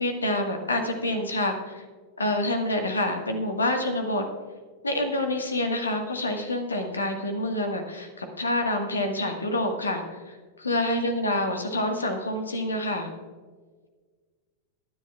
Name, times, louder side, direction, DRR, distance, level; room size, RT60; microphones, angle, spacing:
voice 1, 0.0-1.8 2.2-4.2 4.8-10.4 10.6-13.1, left 1 dB, 75° left, 5 dB, 1.6 m, -27 dB
20.5 x 10.5 x 2.4 m, 1.5 s
figure-of-eight pair, 90°, 0 cm